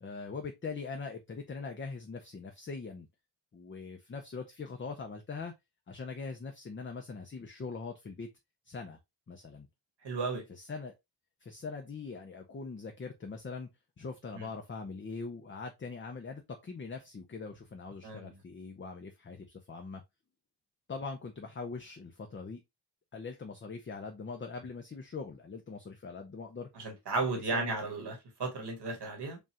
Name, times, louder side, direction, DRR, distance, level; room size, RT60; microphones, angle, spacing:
voice 1, 0.0-3.1 3.5-5.5 5.9-8.3 8.6-9.0 9.3-9.7 10.5-10.9 11.4-13.7 14.0-20.0 20.9-22.6 23.1-26.7 27.3-27.8, left 4 dB, 30° left, 0.6 m, -42 dB
voice 2, 10.0-10.4 14.3-14.5 18.0-18.3 26.8-29.4, right 3 dB, 85° right, 1.7 m, -34 dB
5.2 x 2.4 x 2.8 m
wide cardioid pair, 105°, 39 cm